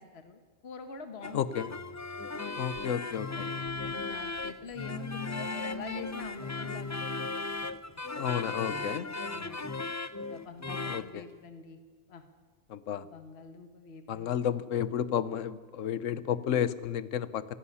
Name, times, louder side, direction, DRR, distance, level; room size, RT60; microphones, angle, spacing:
voice 1, 0.0-1.7 2.3-2.6 3.3-7.5 9.2-9.7 10.1-11.8 12.1-12.2 13.0-14.4, left 5 dB, 55° left, 7 dB, 1.5 m, -46 dB
sound 1, 1.2-11.1, left 3 dB, 20° left, 0.4 m, -36 dB
voice 2, 1.3-1.7 2.6-3.5 8.1-9.1 10.9-11.0 12.7-13.0 14.1-17.6, left 9 dB, 80° left, 15 dB, 1.1 m, -31 dB
26.0 x 11.0 x 9.8 m, 1.4 s
omnidirectional pair, 1.3 m